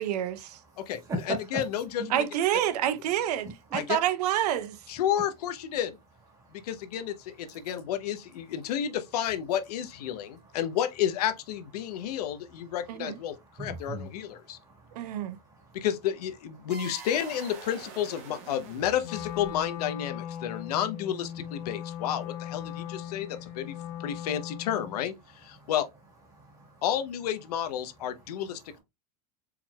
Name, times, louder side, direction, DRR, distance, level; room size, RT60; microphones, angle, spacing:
voice 1, 0.0-0.6 2.1-4.8 12.9-13.2 14.9-15.4, right 11 dB, 85° right, 0.6 m, -28 dB
voice 2, 0.6-1.5 6.3-6.7 7.5-7.7 10.1-10.5 11.8-12.2 13.3-14.1 14.4-15.9 16.6-16.7 20.4-20.6 21.7-21.8 22.6-24.2 25.5-25.7 26.3-26.8, right 1 dB, 15° right, 1.5 m, -42 dB
voice 3, 1.3-2.2 3.7-4.0 4.9-6.0 6.5-14.6 15.7-23.7 24.0-25.1 25.4-25.9 26.8-28.8, left 10 dB, 80° left, 0.7 m, -31 dB
sound 1, 16.7-19.9, right 5 dB, 35° right, 1.0 m, -45 dB
Wind instrument woodwind instrument, 19.0-25.0, left 10 dB, 60° left, 1.4 m, -39 dB
4.6 x 3.6 x 2.3 m
supercardioid pair, 180°, 20 cm